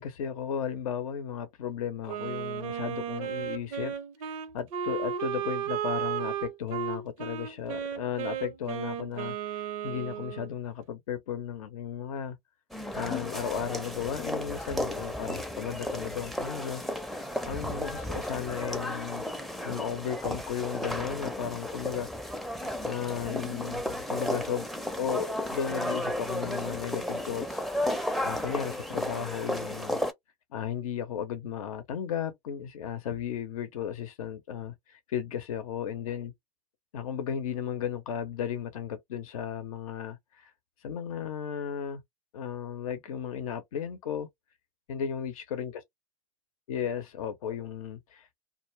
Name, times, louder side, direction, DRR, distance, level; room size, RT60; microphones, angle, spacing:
voice 1, 0.0-3.9 4.2-12.4 12.9-19.2 19.6-22.1 22.8-24.7 25.0-27.6 28.2-30.0 30.5-36.3 36.9-40.5 40.8-42.0 42.3-44.3 44.9-45.7 46.7-48.3, left 8 dB, 85° left, 0.6 m, -35 dB
Wind instrument woodwind instrument, 2.1-10.5, right 9 dB, 75° right, 0.6 m, -34 dB
sound 1, 12.7-30.1, left 1 dB, ahead, 0.4 m, -34 dB
2.2 x 2.0 x 3.1 m
hypercardioid pair, 95°, 17 cm